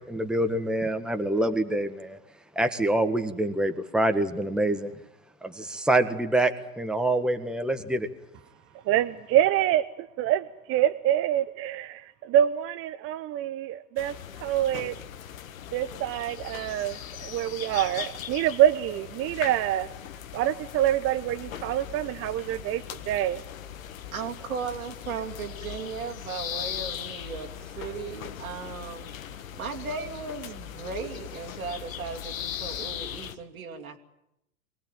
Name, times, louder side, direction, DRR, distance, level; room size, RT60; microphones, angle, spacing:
voice 1, 0.1-2.2 2.5-4.9 5.4-8.1, right 1 dB, ahead, 7 dB, 1.5 m, -26 dB
voice 2, 8.8-14.1 14.4-14.9 15.7-19.9 20.3-23.4, right 11 dB, 30° right, 10 dB, 0.9 m, -26 dB
sound 1, 14.0-33.3, left 9 dB, 70° left, 1.7 m, -39 dB
voice 3, 24.1-29.1 29.5-34.0, right 5 dB, 80° right, 2 dB, 3.0 m, -36 dB
24.0 x 19.0 x 9.2 m, 0.84 s
hypercardioid pair, 105°, 42 cm